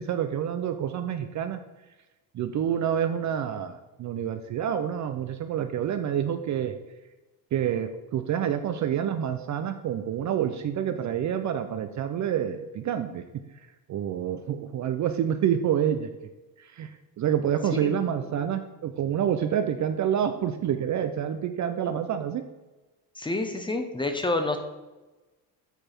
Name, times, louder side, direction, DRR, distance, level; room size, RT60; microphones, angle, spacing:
voice 1, 0.0-1.6 2.3-6.7 7.5-13.2 13.9-16.1 16.6-22.4, right 9 dB, 45° right, 8 dB, 0.5 m, -28 dB
voice 2, 17.7-18.3 23.2-24.6, left 2 dB, 10° left, 6 dB, 0.8 m, -29 dB
7.9 x 4.6 x 4.3 m, 1.1 s
cardioid pair, 105°, 43 cm